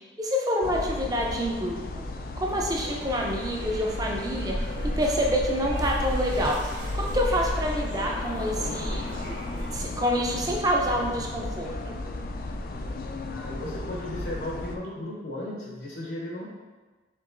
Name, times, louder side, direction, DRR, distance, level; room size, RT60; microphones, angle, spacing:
voice 1, 0.2-2.0 2.4-4.6 5.0-6.6 6.9-9.1 9.7-11.9, equal, 20° right, -1 dB, 0.5 m, -27 dB
sound 1, 0.6-14.8, left 2 dB, 55° left, 0.3 m, -34 dB
sound 2, 2.8-10.0, equal, 90° right, 0.7 m, -36 dB
sound 3, 4.7-6.5, equal, 70° right, 1.4 m, -39 dB
voice 2, 13.3-16.5, left 1 dB, 70° left, -4 dB, 0.7 m, -35 dB
4.5 x 3.8 x 2.6 m, 1.3 s
head